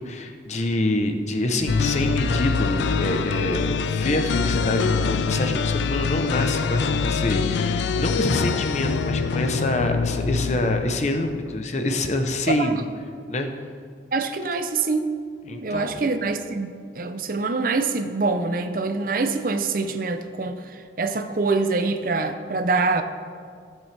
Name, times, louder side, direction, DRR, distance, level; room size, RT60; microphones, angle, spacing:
voice 1, 0.0-12.8 13.3-13.5 15.5-16.0, left 1 dB, 40° left, 6 dB, 0.8 m, -26 dB
sound 1, 1.7-11.5, left 5 dB, 80° left, 0.4 m, -24 dB
voice 2, 14.1-15.1 15.5-23.0, right 3 dB, 50° right, 8 dB, 0.6 m, -25 dB
15.0 x 7.6 x 3.4 m, 2.1 s
head